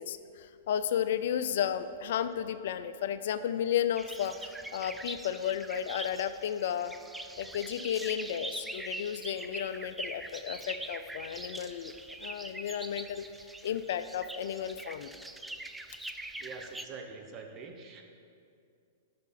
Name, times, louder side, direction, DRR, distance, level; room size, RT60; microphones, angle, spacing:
voice 1, 0.0-6.9 7.4-11.9 12.2-15.1, left 9 dB, 65° left, 12 dB, 0.4 m, -33 dB
sound 1, 4.0-16.8, right 2 dB, 5° right, 0.4 m, -43 dB
voice 2, 16.4-18.0, right 4 dB, 30° right, 3 dB, 1.1 m, -45 dB
9.4 x 5.9 x 5.9 m, 2.4 s
hypercardioid pair, 125°, 0 cm